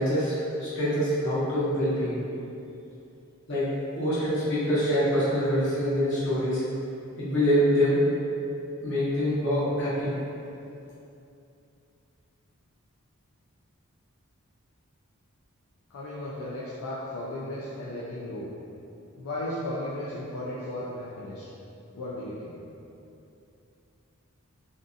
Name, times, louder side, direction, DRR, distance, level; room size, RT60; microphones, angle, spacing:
voice 1, 0.0-2.2 3.5-3.7 4.0-6.6 7.2-8.0 8.8-10.1, equal, 55° left, -10 dB, 0.8 m, -25 dB
voice 2, 15.9-18.5 19.2-21.5 21.9-22.6, left 1 dB, 80° left, -7 dB, 0.4 m, -35 dB
2.6 x 2.4 x 2.4 m, 2.7 s
head